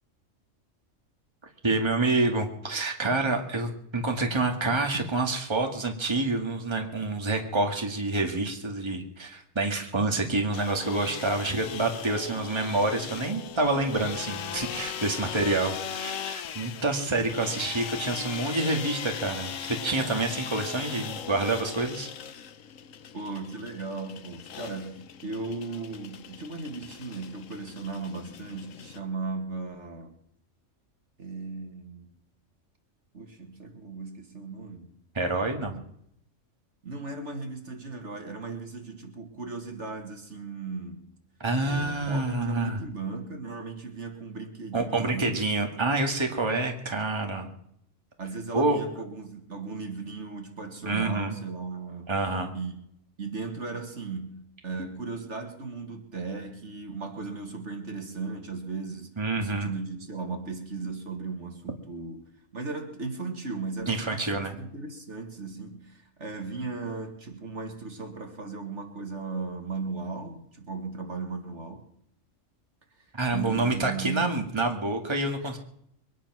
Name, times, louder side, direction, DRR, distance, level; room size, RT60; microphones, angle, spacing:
voice 1, 1.6-22.1 35.2-35.8 41.4-42.8 44.7-47.5 48.5-48.8 50.8-51.4 52.1-52.5 59.2-59.7 63.9-64.5 73.1-75.6, right 2 dB, 20° right, 3 dB, 1.9 m, -27 dB
sound 1, 10.5-29.0, left 8 dB, 80° left, 1.2 m, -39 dB
voice 2, 23.1-30.1 31.2-32.1 33.1-35.0 35.7-35.8 36.8-41.1 41.6-45.5 48.2-52.1 52.5-52.8 53.2-62.3 62.5-71.9 73.3-74.4 75.4-75.5, right 4 dB, 65° right, 4 dB, 2.4 m, -36 dB
23.0 x 10.0 x 6.1 m, 0.72 s
omnidirectional pair, 1.3 m